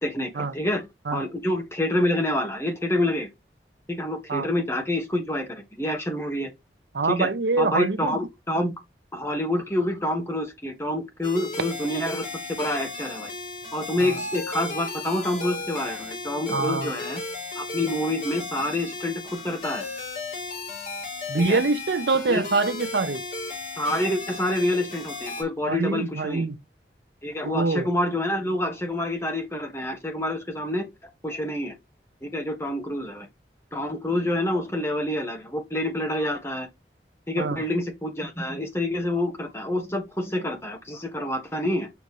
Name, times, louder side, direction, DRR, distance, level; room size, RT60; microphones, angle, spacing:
voice 1, 0.0-3.3 3.9-6.5 7.1-7.3 7.6-8.7 9.1-12.3 12.6-13.3 13.7-17.2 17.5-19.9 21.4-21.6 22.3-22.5 23.8-26.5 27.2-30.9 31.2-31.7 32.2-33.3 33.7-36.7 37.3-41.9, left 1 dB, 15° left, 1.4 m, -27 dB
voice 2, 6.9-8.2 14.0-14.1 16.5-16.9 21.3-23.2 25.7-26.6 27.4-27.9 37.4-37.6, right 3 dB, 75° right, 0.7 m, -25 dB
sound 1, 11.2-25.4, left 3 dB, 45° left, 5.1 m, -35 dB
7.0 x 5.1 x 3.1 m
head